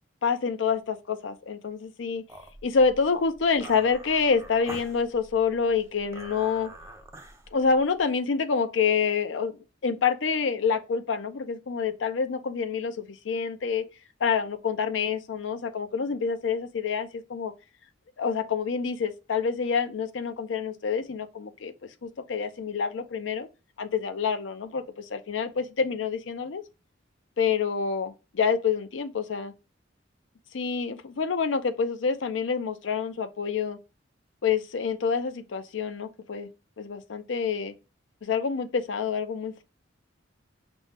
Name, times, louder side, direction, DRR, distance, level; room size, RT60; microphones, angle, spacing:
voice 1, 0.2-2.2 2.6-6.7 7.5-13.9 14.2-17.5 18.2-21.7 22.0-23.5 23.8-26.6 27.4-29.5 30.5-33.8 34.4-36.5 36.8-37.7 38.2-39.6, left 5 dB, 70° left, 0.5 m, -27 dB
sound 1, 2.3-8.0, right 2 dB, 15° right, 0.5 m, -46 dB
5.2 x 2.1 x 3.2 m
head